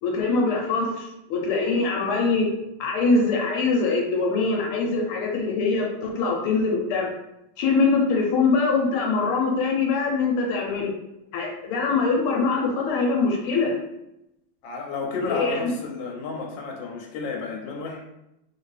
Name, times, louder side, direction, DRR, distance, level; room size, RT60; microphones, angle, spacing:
voice 1, 0.0-2.5 2.8-7.1 7.6-10.9 11.3-13.8 15.2-15.7, left 4 dB, 85° left, 0 dB, 1.5 m, -23 dB
voice 2, 14.6-18.1, left 4 dB, 65° left, 0 dB, 1.3 m, -32 dB
3.1 x 2.9 x 3.1 m, 0.88 s
omnidirectional pair, 2.4 m